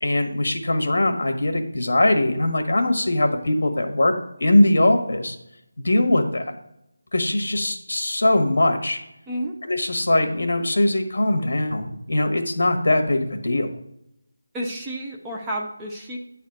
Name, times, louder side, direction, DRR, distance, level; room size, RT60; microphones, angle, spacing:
voice 1, 0.0-4.1 4.4-5.4 5.8-6.4 7.1-9.0 9.6-13.7, left 1 dB, 60° left, 5 dB, 1.5 m, -21 dB
voice 2, 14.5-16.2, right 1 dB, 5° right, -2 dB, 0.4 m, -30 dB
9.8 x 4.2 x 6.4 m, 0.82 s
figure-of-eight pair, 175°, 0 cm